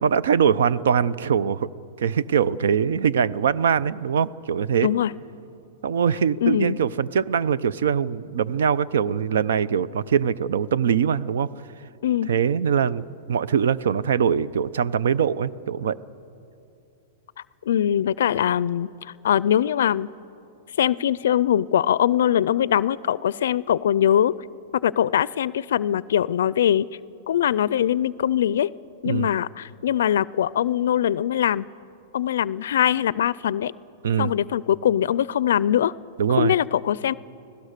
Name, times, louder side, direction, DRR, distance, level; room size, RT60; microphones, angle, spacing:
voice 1, 0.0-1.7 2.0-4.9 5.8-11.5 12.3-16.0 29.0-29.3 34.0-34.3 36.2-36.5, right 7 dB, 85° right, 17 dB, 0.6 m, -22 dB
voice 2, 6.4-6.8 12.0-12.3 17.7-20.1 20.8-24.3 24.8-26.9 27.3-28.7 29.0-31.7 32.1-33.7 34.2-35.9 36.3-37.1, left 10 dB, 80° left, 20 dB, 0.4 m, -22 dB
25.5 x 16.5 x 6.7 m, 2.6 s
supercardioid pair, 165°, 0 cm